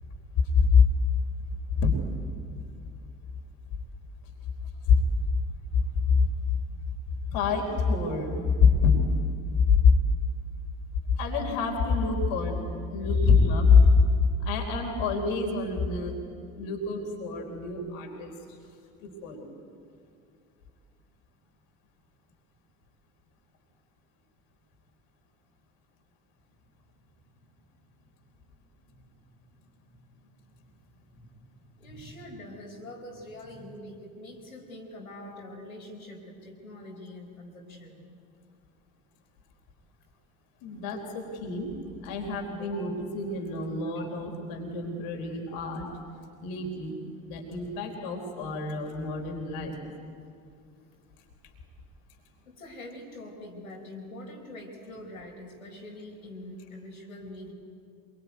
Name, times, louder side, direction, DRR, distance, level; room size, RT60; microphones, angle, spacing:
voice 1, 0.5-0.9 1.8-1.9 4.9-5.0 5.7-6.3 7.3-8.9 9.7-9.9 11.2-12.6 12.9-13.9 14.4-16.2 16.6-18.3 19.0-19.5 40.6-41.7 42.0-45.9 46.4-49.8, left 5 dB, 55° left, 2 dB, 4.2 m, -25 dB
voice 2, 31.8-38.0 42.6-42.9 43.8-44.1 52.4-57.5, left 1 dB, 80° left, -1 dB, 4.7 m, -44 dB
26.5 x 23.5 x 9.4 m, 2.3 s
figure-of-eight pair, 65°, 41 cm